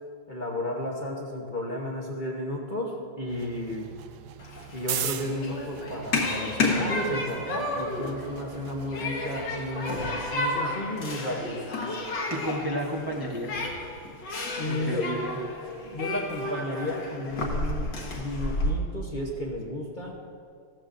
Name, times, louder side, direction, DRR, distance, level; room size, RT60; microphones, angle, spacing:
voice 1, 0.3-3.9 4.7-10.0 10.3-11.7 14.6-15.1 15.8-20.2, left 1 dB, 35° left, -2 dB, 0.8 m, -33 dB
sound 1, 3.3-10.1, right 10 dB, 75° right, 1.0 m, -39 dB
Human group actions, 4.4-18.7, left 2 dB, 60° left, 2.0 m, -32 dB
voice 2, 11.9-13.6 14.7-15.4, right 1 dB, 35° right, -2 dB, 0.3 m, -32 dB
15.0 x 13.5 x 2.6 m, 2.3 s
omnidirectional pair, 2.2 m